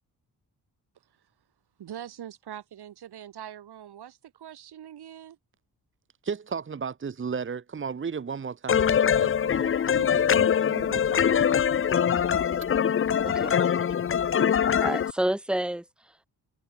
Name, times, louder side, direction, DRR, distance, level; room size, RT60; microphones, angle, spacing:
voice 1, 0.9-1.3 1.8-5.4, right 10 dB, 80° right, 4.7 m, -43 dB
voice 2, 6.2-11.9, right 6 dB, 30° right, 1.4 m, -35 dB
sound 1, 8.7-15.1, left 8 dB, 35° left, 0.6 m, -23 dB
voice 3, 13.2-13.6 14.8-16.3, right 1 dB, ahead, 2.2 m, -30 dB
wide cardioid pair, 150°, 38 cm